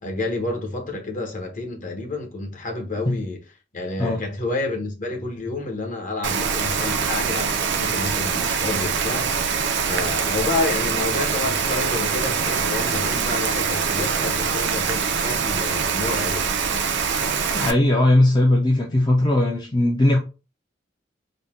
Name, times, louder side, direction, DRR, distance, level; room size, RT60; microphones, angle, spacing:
voice 1, 0.0-3.4 3.7-16.5, left 2 dB, 45° left, 1.0 m, -29 dB
Rain, 6.2-17.7, right 6 dB, 65° right, 0.5 m, -24 dB
voice 2, 17.5-20.2, left 1 dB, 25° left, 0.5 m, -18 dB
4.0 x 2.2 x 3.5 m
head